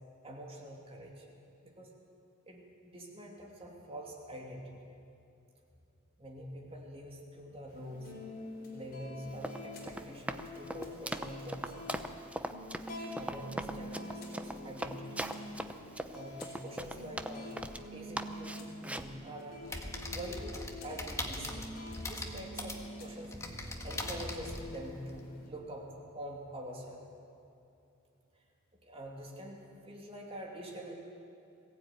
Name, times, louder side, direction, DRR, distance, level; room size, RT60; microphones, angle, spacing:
voice 1, 0.2-1.3 1.6-1.9 2.5-4.7 6.2-8.2 8.7-11.8 13.2-15.3 16.1-17.5 17.9-19.6 20.1-21.7 22.0-23.4 23.8-25.9 26.1-27.0 28.8-30.9, right 1 dB, 30° right, 0 dB, 2.7 m, -45 dB
sound 1, 7.7-25.5, left 1 dB, 45° left, 4.3 m, -47 dB
Run, 9.3-17.9 18.2-19.1, right 1 dB, 5° right, 0.7 m, -40 dB
sound 2, 19.6-25.2, left 1 dB, 15° left, 1.7 m, -41 dB
22.0 x 15.5 x 9.2 m, 2.7 s
head